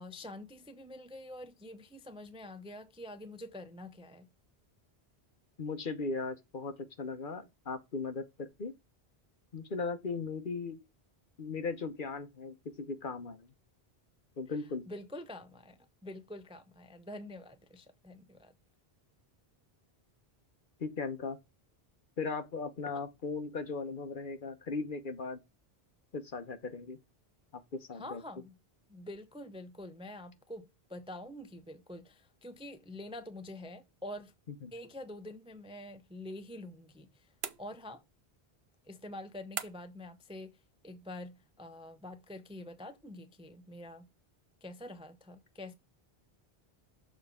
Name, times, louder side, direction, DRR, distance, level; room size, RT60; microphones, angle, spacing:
voice 1, 0.0-4.3 14.5-18.5 22.9-23.0 27.9-28.6 28.9-34.3 34.7-37.3 37.6-38.0 38.8-40.6 40.8-44.1 44.6-45.7, left 1 dB, 5° right, 0.4 m, -46 dB
voice 2, 5.6-8.7 9.5-10.8 11.4-13.5 14.4-14.8 20.8-21.4 22.2-25.4 26.1-27.0 27.7-28.2 34.6-34.7, left 4 dB, 55° left, 1.1 m, -38 dB
sound 1, 37.4-38.2 39.6-40.1, right 9 dB, 75° right, 0.9 m, -41 dB
6.6 x 5.2 x 3.6 m
omnidirectional pair, 1.1 m